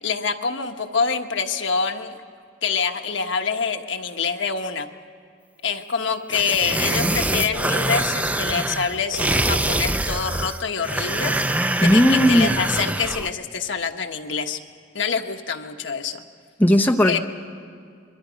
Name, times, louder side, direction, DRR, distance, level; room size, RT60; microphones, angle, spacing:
voice 1, 0.0-2.1 2.6-4.9 5.6-11.3 11.8-14.6 14.9-16.2 17.0-17.2, left 5 dB, 65° left, 4 dB, 1.3 m, -26 dB
sound 1, 6.3-13.3, right 1 dB, 10° right, 0.4 m, -24 dB
voice 2, 6.7-7.1 11.8-12.5 16.6-17.2, equal, 10° left, 1 dB, 0.9 m, -17 dB
27.0 x 23.5 x 5.2 m, 2.3 s
head